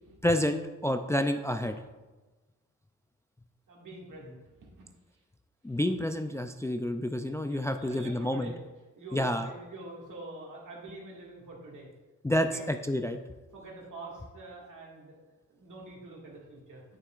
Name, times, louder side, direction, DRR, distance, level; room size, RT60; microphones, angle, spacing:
voice 1, 0.2-1.8 5.6-8.5 9.1-9.5 12.2-13.2, left 1 dB, 10° left, 7 dB, 0.3 m, -29 dB
voice 2, 3.7-4.9 5.9-6.1 7.5-8.6 8.9-11.9 12.4-12.6 13.5-15.2 15.5-16.8, right 2 dB, 80° right, -3 dB, 2.0 m, -46 dB
9.1 x 6.7 x 2.4 m, 1.2 s
wide cardioid pair, 100°, 31 cm